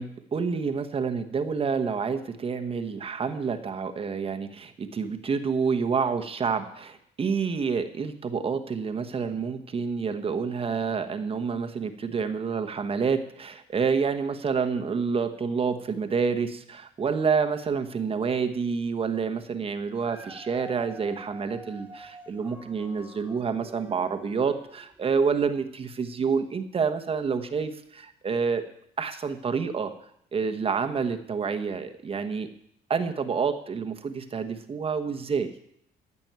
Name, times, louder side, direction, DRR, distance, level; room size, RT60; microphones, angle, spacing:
voice 1, 0.0-28.6 29.0-29.9 30.3-32.5 32.9-35.5, right 5 dB, 35° right, 7 dB, 1.1 m, -28 dB
Dog, 20.0-25.1 25.7-25.8, right 1 dB, 10° right, 1.6 m, -47 dB
15.0 x 6.2 x 9.4 m, 0.71 s
cardioid pair, 110°, 17 cm